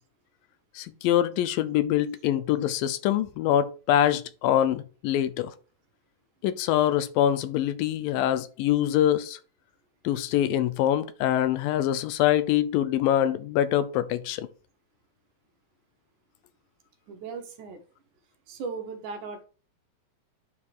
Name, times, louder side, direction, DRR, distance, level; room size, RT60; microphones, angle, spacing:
voice 1, 0.8-5.5 6.4-9.4 10.0-14.5, left 11 dB, 85° left, 2.4 m, -24 dB
voice 2, 17.1-17.8 18.5-19.4, right 5 dB, 70° right, 2.3 m, -37 dB
9.7 x 3.6 x 4.7 m
omnidirectional pair, 4.1 m